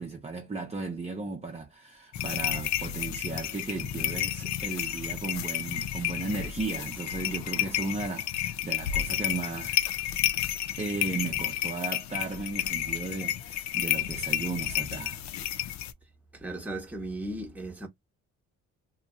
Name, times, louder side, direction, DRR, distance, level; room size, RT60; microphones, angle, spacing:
voice 1, 0.0-9.8 10.8-15.2, right 3 dB, 20° right, 0.8 m, -35 dB
sound 1, 2.1-15.9, left 12 dB, 65° left, 0.5 m, -31 dB
voice 2, 16.3-17.9, right 1 dB, 5° right, 1.1 m, -36 dB
2.9 x 2.6 x 2.3 m
cardioid pair, 90°, 30 cm